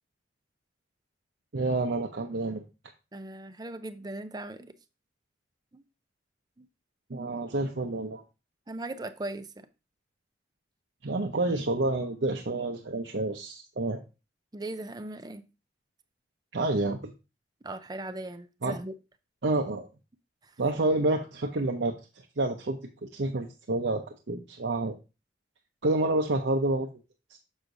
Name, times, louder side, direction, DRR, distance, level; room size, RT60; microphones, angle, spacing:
voice 1, 1.5-2.6 7.1-8.2 11.0-14.0 16.5-17.1 18.6-18.8 19.4-19.9 20.6-21.9 22.4-22.8 23.1-24.9 25.8-26.9 27.3-27.4, right 2 dB, 70° right, 0.7 m, -28 dB
voice 2, 3.1-4.7 5.7-5.8 6.6-6.7 8.7-9.5 14.5-15.4 17.6-18.9, right 2 dB, 20° right, 0.5 m, -38 dB
7.1 x 6.4 x 2.6 m
head